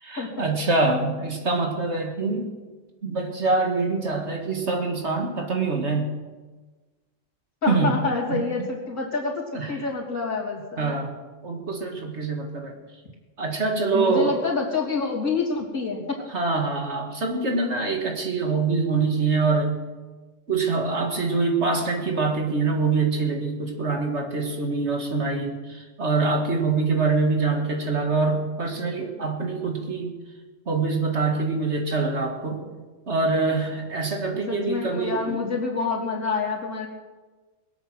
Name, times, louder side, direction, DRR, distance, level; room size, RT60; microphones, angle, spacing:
voice 1, 0.0-2.5 3.0-6.1 7.7-8.0 8.3-8.7 9.5-9.7 10.8-11.2 11.4-12.8 13.4-14.4 16.3-19.8 20.5-30.1 30.7-32.7 33.1-35.4, right 3 dB, 55° right, 3 dB, 2.1 m, -25 dB
voice 2, 7.6-11.0 13.9-16.2 34.3-36.9, left 4 dB, 70° left, -3 dB, 3.5 m, -27 dB
21.5 x 8.7 x 6.2 m, 1.3 s
omnidirectional pair, 1.4 m